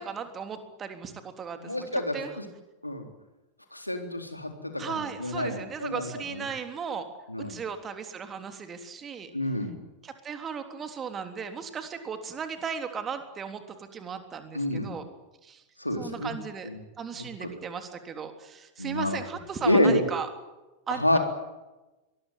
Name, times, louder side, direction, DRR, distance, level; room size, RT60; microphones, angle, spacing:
voice 1, 0.0-1.9 2.1-2.3 4.8-7.1 7.4-9.3 10.0-15.0 15.4-15.6 16.0-16.7 17.0-20.3 20.9-21.2, right 6 dB, 25° right, 7 dB, 3.4 m, -36 dB
voice 2, 1.6-2.5 2.8-3.1 3.7-6.4 7.3-7.5 9.3-9.7 14.5-14.9 15.8-16.3 16.6-16.8 17.4-17.5 18.8-19.2 19.6-20.0 20.9-21.2, left 1 dB, 85° left, 5 dB, 3.8 m, -28 dB
23.5 x 20.5 x 9.4 m, 1.1 s
figure-of-eight pair, 90°, 0 cm